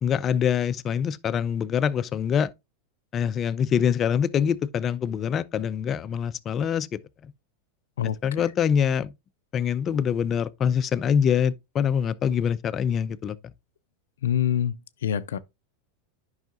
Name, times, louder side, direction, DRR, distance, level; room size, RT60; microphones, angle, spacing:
voice 1, 0.0-2.5 3.1-6.9 7.2-7.3 8.2-9.1 9.5-13.4, left 8 dB, 30° left, 0.5 m, -24 dB
voice 2, 14.2-14.8 15.0-15.4, left 10 dB, 90° left, 0.4 m, -24 dB
9.2 x 5.6 x 2.4 m
supercardioid pair, 120°, 0 cm